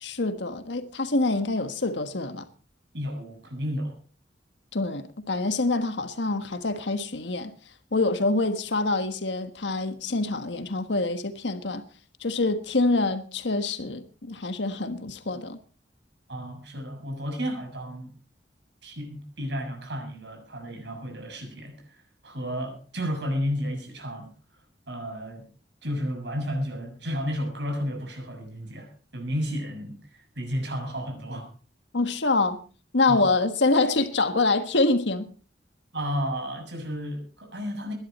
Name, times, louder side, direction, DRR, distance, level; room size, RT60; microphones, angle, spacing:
voice 1, 0.0-2.5 4.7-7.5 7.9-11.8 12.2-15.6 31.9-32.6 32.9-35.3, left 3 dB, 85° left, 1.4 m, -26 dB
voice 2, 2.9-4.0 16.3-18.1 18.8-21.8 22.2-24.3 24.9-25.4 25.8-31.5 33.1-33.3 35.9-37.9, equal, 70° right, 6.6 m, -32 dB
21.5 x 11.0 x 4.4 m
head